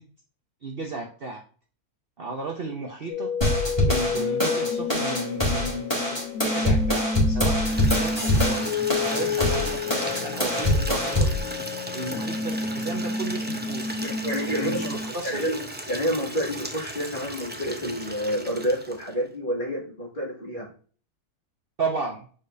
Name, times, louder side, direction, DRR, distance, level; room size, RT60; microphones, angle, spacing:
voice 1, 0.6-1.4 2.2-3.3 3.8-8.7 9.1-11.3 11.9-13.9 14.5-15.5 21.8-22.2, right 3 dB, 45° right, 1 dB, 0.9 m, -34 dB
sound 1, 3.1-15.1, left 4 dB, 65° left, 1.2 m, -30 dB
sound 2, 3.4-11.4, left 1 dB, 15° left, 2.3 m, -24 dB
Water tap faucet / Liquid, 7.7-19.3, right 1 dB, 15° right, 0.4 m, -36 dB
voice 2, 14.0-14.9 15.2-20.7, equal, 35° left, -3 dB, 2.2 m, -29 dB
6.9 x 5.1 x 2.7 m, 0.41 s
omnidirectional pair, 1.6 m